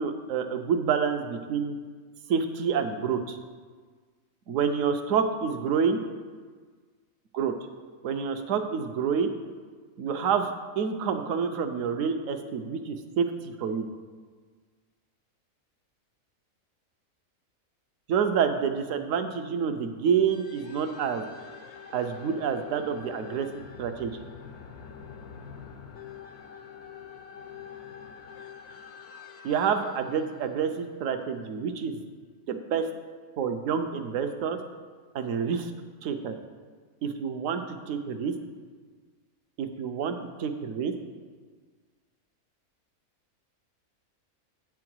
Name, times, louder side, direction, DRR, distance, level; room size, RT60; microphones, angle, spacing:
voice 1, 0.0-1.8 2.3-3.4 4.5-6.0 7.3-7.5 8.0-9.4 10.0-13.9 18.1-21.2 21.9-23.5 23.8-24.2 29.4-32.0 32.5-32.9 33.4-34.6 35.1-35.7 36.0-36.4 37.0-38.3 39.6-40.9, right 6 dB, 65° right, 8 dB, 1.0 m, -28 dB
sound 1, 20.3-31.5, left 7 dB, 80° left, 1.3 m, -46 dB
8.3 x 4.8 x 6.2 m, 1.5 s
omnidirectional pair, 1.6 m